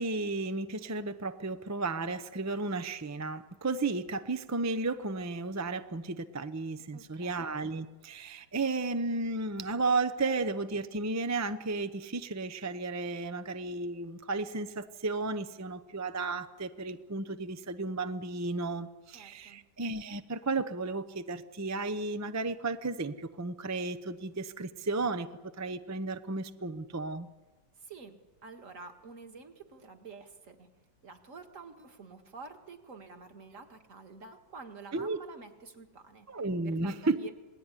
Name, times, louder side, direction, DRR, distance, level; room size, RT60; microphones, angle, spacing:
voice 1, 0.0-25.3 25.6-27.3 34.9-35.2 36.3-37.2, right 3 dB, 25° right, 11 dB, 0.4 m, -33 dB
voice 2, 6.9-7.5 19.1-19.6 27.8-30.7 31.0-36.3 36.6-37.3, right 4 dB, 45° right, 6 dB, 2.2 m, -49 dB
27.0 x 19.0 x 9.8 m, 1.3 s
omnidirectional pair, 1.9 m